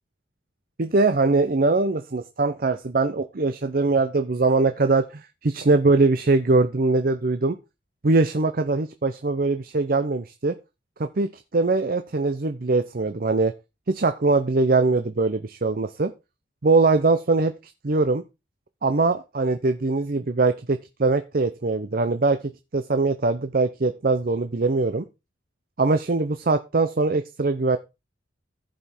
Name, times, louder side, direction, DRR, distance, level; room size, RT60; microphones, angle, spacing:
voice 1, 0.8-7.6 8.0-10.6 11.0-13.5 13.9-16.1 16.6-17.5 17.8-18.2 18.8-22.4 22.7-25.0 25.8-27.8, right 3 dB, 50° right, 9 dB, 0.7 m, -22 dB
15.0 x 5.2 x 4.3 m, 0.27 s
head